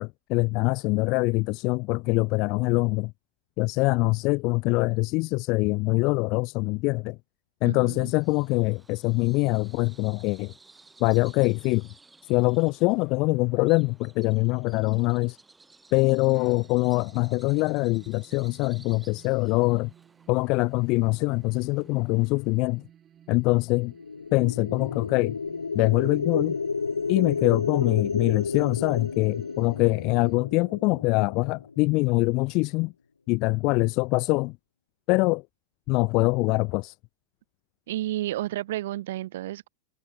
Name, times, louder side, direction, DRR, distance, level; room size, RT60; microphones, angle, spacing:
voice 1, 0.0-3.1 3.6-7.2 7.6-10.5 11.0-11.9 12.3-15.4 15.9-19.9 20.3-22.8 23.3-23.9 24.3-25.4 25.7-26.6 27.1-32.9 33.3-34.6 35.1-35.4 35.9-36.9, left 25 dB, 40° left, 0.7 m, -24 dB
voice 2, 7.7-8.1 24.7-24.8 37.9-39.7, right 15 dB, 55° right, 1.7 m, -31 dB
Bird vocalization bird call bird song, 7.8-22.6, right 3 dB, 10° right, 6.9 m, -57 dB
sound 1, 16.2-30.4, right 10 dB, 25° right, 6.9 m, -57 dB
sound 2, 23.9-32.0, left 4 dB, 75° left, 1.7 m, -31 dB
figure-of-eight pair, 90°, 0 cm